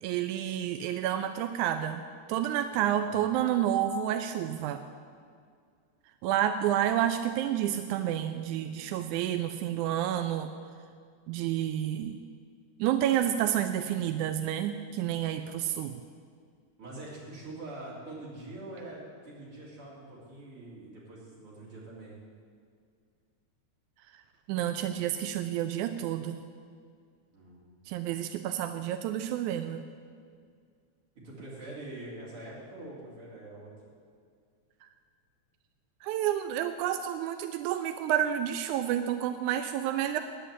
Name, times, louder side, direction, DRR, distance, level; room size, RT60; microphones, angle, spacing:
voice 1, 0.0-2.0 2.3-4.8 6.2-10.5 11.3-12.2 12.8-16.0 24.5-26.4 27.9-29.8 36.0-40.2, right 11 dB, 90° right, 8 dB, 2.0 m, -29 dB
voice 2, 3.0-3.3 16.8-22.1 27.3-27.8 31.2-33.7, right 2 dB, 45° right, -6 dB, 4.2 m, -44 dB
10.0 x 9.2 x 8.3 m, 2.1 s
omnidirectional pair, 3.4 m